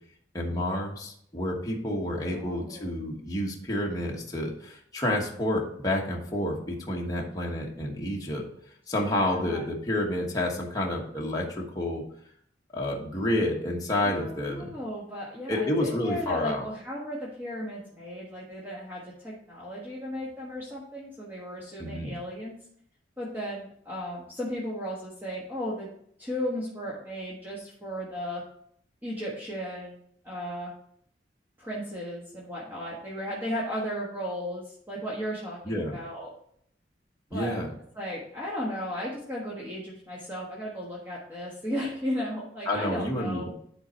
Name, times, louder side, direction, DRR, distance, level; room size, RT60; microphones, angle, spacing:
voice 1, 0.3-8.4 8.9-12.0 12.7-14.7 15.5-16.7 21.8-22.2 35.6-36.0 37.3-37.7 42.7-43.5, left 1 dB, 20° left, -2 dB, 1.2 m, -29 dB
voice 2, 2.3-2.9 9.1-9.6 14.0-22.6 23.2-25.9 26.2-28.4 29.0-30.0 30.2-30.7 31.6-36.3 37.3-37.6 37.9-43.5, equal, 10° right, -5 dB, 1.4 m, -35 dB
10.0 x 4.0 x 4.3 m, 0.66 s
head